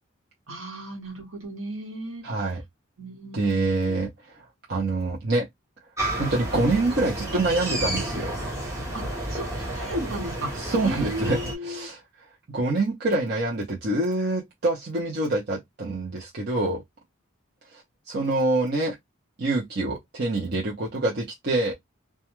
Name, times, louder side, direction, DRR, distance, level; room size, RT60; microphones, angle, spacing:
voice 1, 0.5-2.3 3.0-4.0 8.9-11.9, equal, 70° right, 1.1 m, -35 dB
voice 2, 2.2-2.6 3.3-4.1 4.4-5.4 6.2-8.3 10.6-11.4 11.6-12.0 12.5-16.8 17.7-17.8 18.1-18.9 19.4-21.7, right 2 dB, 50° right, 0.6 m, -26 dB
sound 1, 6.0-11.6, right 1 dB, 15° right, 0.7 m, -31 dB
2.2 x 2.2 x 2.9 m
head